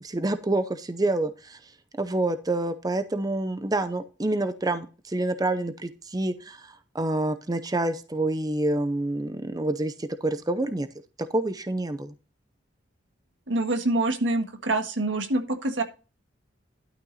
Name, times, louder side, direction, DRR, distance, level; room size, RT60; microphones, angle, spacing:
voice 1, 0.0-1.6 2.0-10.9 11.3-12.1, right 2 dB, 20° right, 11 dB, 0.6 m, -27 dB
voice 2, 13.5-15.8, right 2 dB, 90° right, 6 dB, 1.6 m, -26 dB
12.0 x 6.0 x 4.0 m, 0.32 s
head